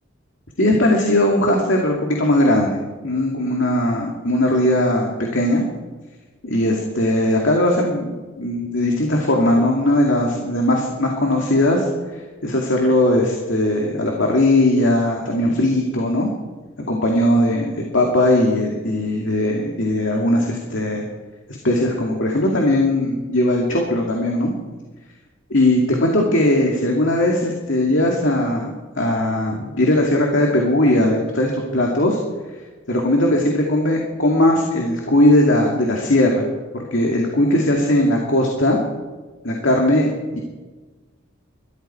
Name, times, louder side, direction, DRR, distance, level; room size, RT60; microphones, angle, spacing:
voice 1, 0.6-5.6 6.4-11.9 12.4-16.3 16.9-21.0 21.5-24.5 25.5-32.2 32.9-36.5 36.7-38.8 39.4-40.4, left 1 dB, 65° left, -1 dB, 2.3 m, -19 dB
21.5 x 14.0 x 4.4 m, 1.3 s
head